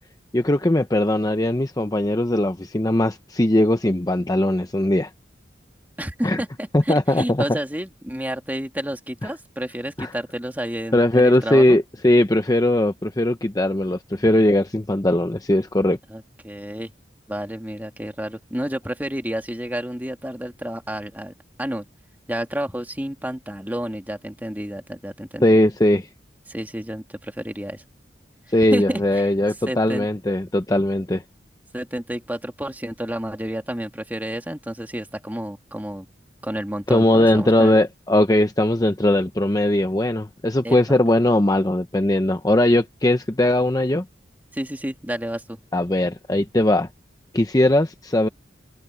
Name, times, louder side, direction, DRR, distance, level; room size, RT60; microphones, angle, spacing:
voice 1, 0.3-5.1 6.2-6.4 6.7-7.4 10.0-10.1 10.9-16.0 25.4-26.1 28.5-31.2 36.9-44.0 45.7-46.9 47.3-48.3, left 1 dB, 20° left, 0.7 m, -19 dB
voice 2, 6.0-11.8 16.1-16.9 17.3-21.3 21.6-21.9 22.3-25.6 26.5-27.8 28.7-29.3 29.7-30.1 31.7-36.1 36.4-37.8 40.6-40.8 44.5-45.6, equal, 10° right, 2.4 m, -30 dB
head